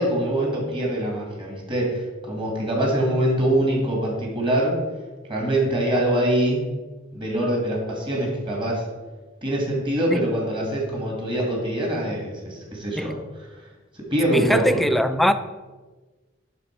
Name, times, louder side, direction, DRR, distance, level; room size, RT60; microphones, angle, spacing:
voice 1, 0.0-4.8 5.3-6.6 7.1-8.8 9.4-13.2 13.9-14.8, right 1 dB, 25° right, 2.0 m, -24 dB
voice 2, 14.3-15.3, equal, ahead, 0.3 m, -21 dB
11.0 x 4.0 x 4.5 m
head